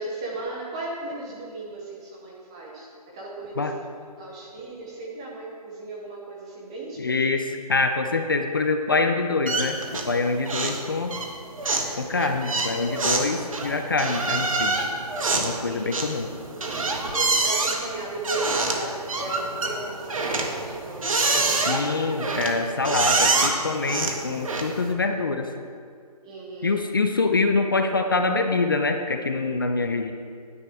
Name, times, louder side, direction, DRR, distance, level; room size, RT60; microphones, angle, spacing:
voice 1, 0.0-2.9 3.1-3.8 4.2-7.2 15.7-15.9 17.1-22.1 26.2-26.8, right 2 dB, 10° right, -3 dB, 0.6 m, -36 dB
voice 2, 7.0-9.8 10.1-11.1 12.0-14.7 15.3-16.3 21.7-25.5 26.6-30.1, left 3 dB, 35° left, 6 dB, 0.5 m, -25 dB
sound 1, 9.5-10.2 10.5-10.8 11.1-24.9, right 3 dB, 55° right, 1.5 m, -26 dB
17.5 x 9.7 x 3.5 m, 2.2 s
hypercardioid pair, 170°, 21 cm